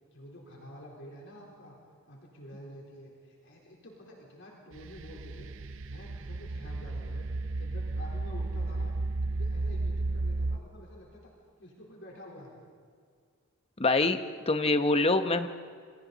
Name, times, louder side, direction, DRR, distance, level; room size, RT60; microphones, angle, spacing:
voice 1, 0.1-1.8 2.1-5.5 5.9-8.9 9.2-11.3 11.6-12.6, equal, 60° left, -2 dB, 3.9 m, -49 dB
sound 1, 4.7-10.6, right 2 dB, 60° right, 0.6 m, -33 dB
voice 2, 13.8-14.2 14.5-15.5, left 2 dB, 30° left, 9 dB, 0.9 m, -24 dB
28.5 x 24.5 x 4.1 m, 2.1 s
head